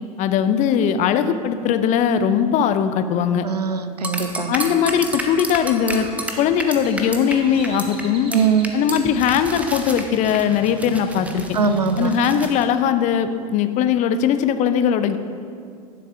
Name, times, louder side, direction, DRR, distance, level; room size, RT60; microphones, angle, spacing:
voice 1, 0.2-3.4 4.5-6.1 6.4-8.3 8.7-11.4 12.0-15.2, left 8 dB, 40° left, 10 dB, 0.5 m, -20 dB
voice 2, 3.4-4.5 8.3-8.8 11.5-12.1, right 6 dB, 90° right, 9 dB, 0.5 m, -21 dB
sound 1, 4.0-7.4 7.6-8.0 8.3-8.4 8.6-12.6, right 1 dB, 5° right, 0.7 m, -30 dB
Crow, 5.9-12.1, right 3 dB, 25° right, 1.2 m, -42 dB
10.5 x 6.6 x 2.7 m, 2.3 s
figure-of-eight pair, 80°, 20 cm